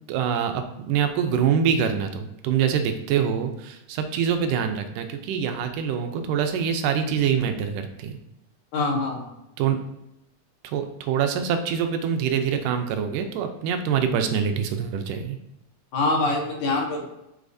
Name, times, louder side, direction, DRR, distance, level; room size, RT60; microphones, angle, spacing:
voice 1, 0.1-8.2 9.6-9.8 10.6-15.4, right 7 dB, 85° right, 6 dB, 2.3 m, -25 dB
voice 2, 8.7-9.3 15.9-17.1, left 2 dB, 70° left, 0 dB, 2.6 m, -24 dB
8.2 x 6.5 x 2.7 m, 0.88 s
omnidirectional pair, 3.7 m